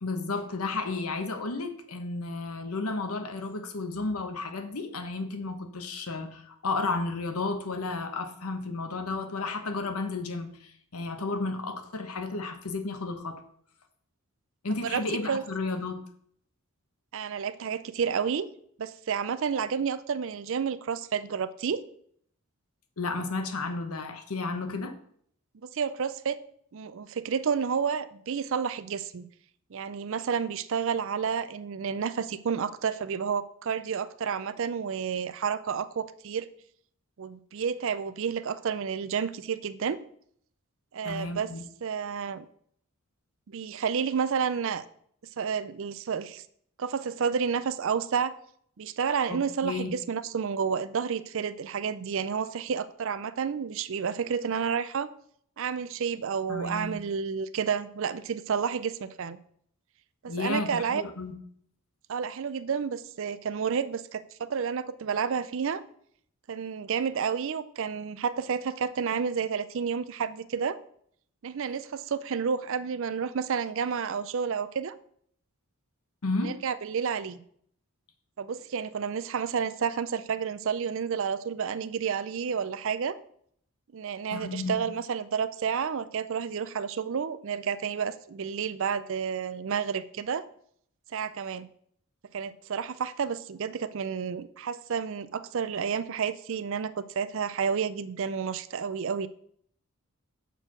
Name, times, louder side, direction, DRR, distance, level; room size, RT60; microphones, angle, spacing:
voice 1, 0.0-13.4 14.6-16.0 23.0-25.0 41.0-41.6 49.3-49.9 56.5-57.0 60.2-61.4 76.2-76.5 84.3-84.9, left 3 dB, 75° left, 8 dB, 1.0 m, -32 dB
voice 2, 17.1-18.5 18.8-21.8 25.6-26.4 26.7-29.3 29.7-36.5 37.2-40.0 40.9-41.5 41.8-42.5 43.5-44.8 45.4-46.4 46.8-48.3 48.8-55.1 55.6-59.4 60.2-61.0 62.1-65.8 66.5-70.8 71.4-74.9 76.4-77.4 78.4-83.2 83.9-90.4 91.1-91.7 92.3-99.3, right 6 dB, 60° right, 15 dB, 0.4 m, -30 dB
6.8 x 4.4 x 6.0 m, 0.64 s
head